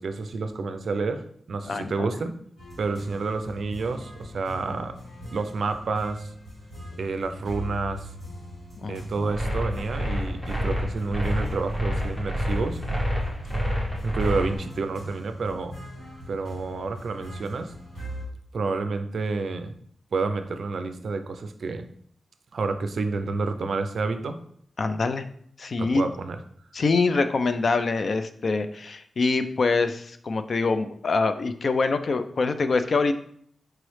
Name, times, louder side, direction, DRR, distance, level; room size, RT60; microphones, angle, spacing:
voice 1, 0.0-2.3 2.8-5.0 5.3-6.3 7.0-8.1 8.9-12.8 14.0-15.8 16.3-17.7 18.5-19.8 20.1-21.9 22.5-24.4 25.8-26.4, right 4 dB, 65° right, 8 dB, 0.4 m, -29 dB
voice 2, 1.6-2.1 8.8-9.3 24.8-25.3 25.6-26.0 26.7-33.1, left 3 dB, 50° left, 10 dB, 0.3 m, -25 dB
sound 1, 2.6-18.2, equal, 65° left, 1.8 m, -41 dB
sound 2, 9.3-14.5, equal, 15° left, 1.1 m, -27 dB
4.6 x 3.0 x 3.1 m, 0.64 s
wide cardioid pair, 130°, 0 cm